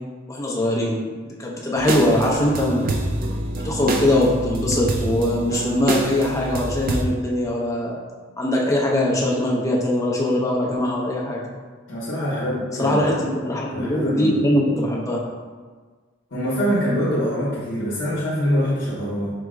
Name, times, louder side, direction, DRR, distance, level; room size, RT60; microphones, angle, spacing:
voice 1, 0.3-1.0 1.4-2.9 3.6-8.0 8.4-11.4 12.8-15.2, left 1 dB, 15° left, -3 dB, 0.5 m, -21 dB
sound 1, 1.8-7.0, right 2 dB, 45° right, 0.4 m, -26 dB
voice 2, 11.9-13.1 13.7-14.4 16.3-19.3, equal, 70° left, -7 dB, 0.8 m, -24 dB
4.6 x 2.0 x 3.6 m, 1.4 s
head